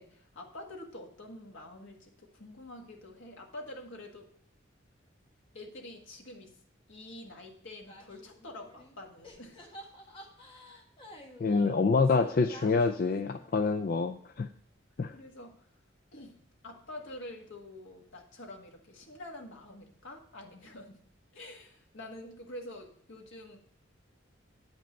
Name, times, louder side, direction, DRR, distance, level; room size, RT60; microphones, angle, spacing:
voice 1, 0.0-4.3 5.5-6.5 6.9-9.6 15.1-15.7 16.1-21.0 21.3-23.6, left 1 dB, 80° left, 1 dB, 1.7 m, -47 dB
sound 1, 7.9-9.0 9.2-13.9, equal, 25° left, 1.4 m, -51 dB
voice 2, 11.4-14.5 15.0-15.1, left 4 dB, 45° left, 5 dB, 0.4 m, -26 dB
8.9 x 5.3 x 5.2 m, 0.66 s
head